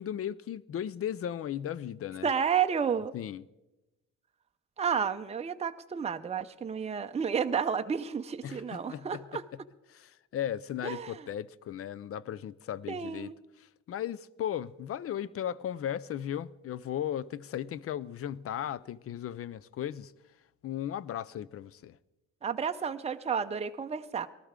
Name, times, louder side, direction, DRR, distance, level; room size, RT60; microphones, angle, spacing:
voice 1, 0.0-2.3 3.1-3.4 8.4-9.4 9.9-13.3 13.6-20.1 20.6-22.0, left 10 dB, 50° left, 0.5 m, -36 dB
voice 2, 2.2-3.1 4.8-9.4 10.8-11.2 12.9-13.4 22.4-24.3, right 7 dB, 20° right, 0.6 m, -31 dB
19.0 x 13.5 x 3.7 m
cardioid pair, 90°, 30 cm